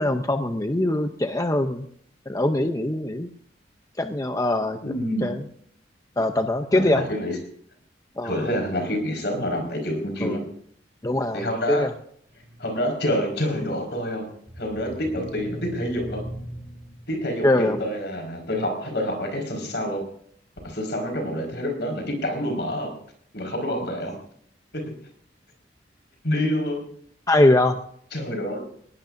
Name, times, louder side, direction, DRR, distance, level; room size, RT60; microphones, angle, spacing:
voice 1, 0.0-1.9 2.3-3.3 4.0-4.8 5.2-5.4 6.2-7.1 8.2-8.4 10.2-10.4 11.0-11.9 17.4-17.8 27.3-27.8, left 1 dB, 20° left, 6 dB, 0.6 m, -22 dB
voice 2, 4.8-5.3 6.7-7.4 8.2-10.4 11.3-11.9 12.6-14.2 14.6-16.2 17.1-20.0 20.6-22.9 23.3-24.2 24.7-24.8 26.2-26.8 28.1-28.6, equal, 65° left, 3 dB, 5.0 m, -27 dB
sound 1, 12.3-17.5, equal, 10° right, 5.2 m, -40 dB
20.5 x 18.0 x 2.6 m, 0.65 s
head